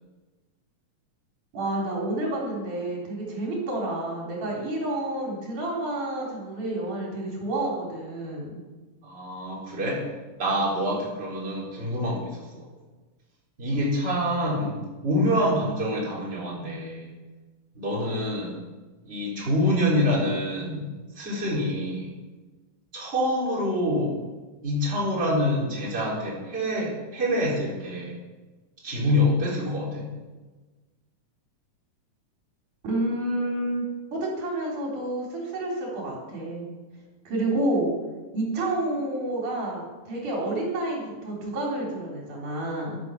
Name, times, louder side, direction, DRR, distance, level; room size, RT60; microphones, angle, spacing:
voice 1, 1.5-8.6 32.8-33.8 34.1-36.7 37.2-37.9 38.3-43.0, right 1 dB, 65° right, -3 dB, 5.1 m, -29 dB
voice 2, 9.0-10.0 10.4-12.6 13.6-17.0 17.7-18.5 19.0-20.9 21.2-22.1 22.9-24.2 24.6-28.2 28.8-30.1, equal, 15° right, -5 dB, 4.1 m, -26 dB
12.0 x 11.0 x 7.4 m, 1.3 s
omnidirectional pair, 3.9 m